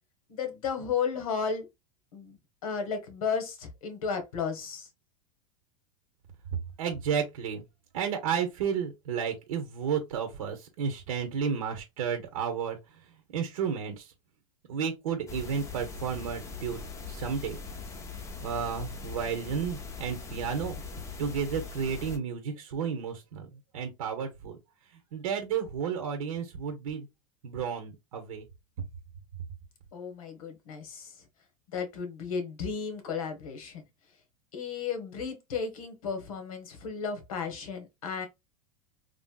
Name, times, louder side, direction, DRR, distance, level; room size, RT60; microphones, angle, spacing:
voice 1, 0.3-1.7 2.1-2.4 2.6-4.9 29.9-31.2 31.7-33.8 34.5-38.3, left 6 dB, 90° left, 1.2 m, -34 dB
voice 2, 6.8-7.6 7.9-12.8 13.3-14.1 14.7-16.8 17.1-17.6 18.4-20.7 21.2-24.6 25.1-27.1 27.4-28.5, right 7 dB, 85° right, 0.8 m, -32 dB
sound 1, 15.3-22.2, left 5 dB, 15° left, 0.5 m, -41 dB
3.2 x 2.6 x 2.2 m
supercardioid pair, 135°, 18 cm